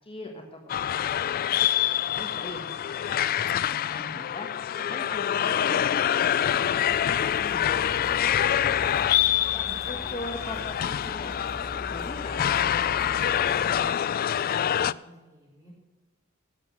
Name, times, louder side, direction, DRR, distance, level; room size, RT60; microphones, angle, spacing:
voice 1, 0.0-1.6 1.9-9.2 9.9-13.9, left 1 dB, 25° left, 2 dB, 1.3 m, -42 dB
sound 1, 0.7-14.9, left 10 dB, 45° left, 0.3 m, -26 dB
sound 2, 6.8-13.9, left 1 dB, ahead, 1.6 m, -42 dB
voice 2, 9.5-9.9 14.4-15.7, right 1 dB, 15° right, -2 dB, 5.0 m, -50 dB
12.0 x 7.8 x 7.4 m, 1.2 s
head